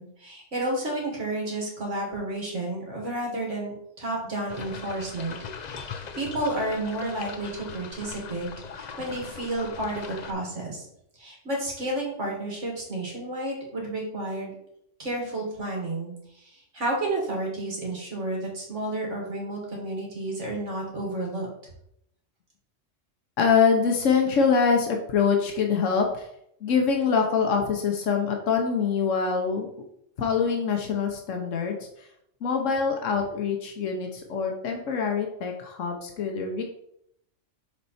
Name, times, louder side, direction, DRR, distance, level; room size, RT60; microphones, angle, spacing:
voice 1, 0.0-8.5 8.7-10.9 11.2-14.5 15.0-21.5, right 1 dB, 70° right, -2 dB, 2.4 m, -31 dB
sound 1, 4.5-10.3, left 6 dB, 50° left, 0.5 m, -40 dB
voice 2, 23.4-26.3 26.6-29.7 30.2-32.1 32.4-36.6, left 5 dB, 85° left, 2 dB, 1.2 m, -24 dB
6.7 x 4.4 x 4.2 m, 0.75 s
omnidirectional pair, 1.3 m